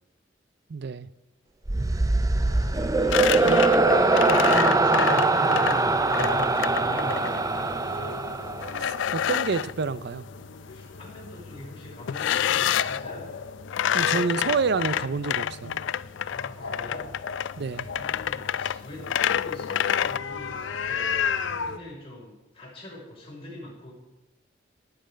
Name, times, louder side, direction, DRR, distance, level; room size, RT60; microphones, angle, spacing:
voice 1, 0.7-1.1 3.4-3.6 9.1-10.2 13.9-15.8 17.6-17.9, right 4 dB, 60° right, 16 dB, 0.5 m, -28 dB
sound 1, 1.7-9.0, right 3 dB, 20° right, 0.6 m, -22 dB
voice 2, 2.4-8.2 10.6-13.3 16.2-17.1 17.8-23.9, left 1 dB, 30° left, -4 dB, 6.0 m, -43 dB
sound 2, 2.5-21.8, left 5 dB, 85° left, 0.8 m, -37 dB
sound 3, 3.1-7.4 8.6-9.7 12.1-13.0 13.7-20.2, left 10 dB, 70° left, 0.3 m, -27 dB
18.0 x 8.8 x 5.1 m, 0.98 s
head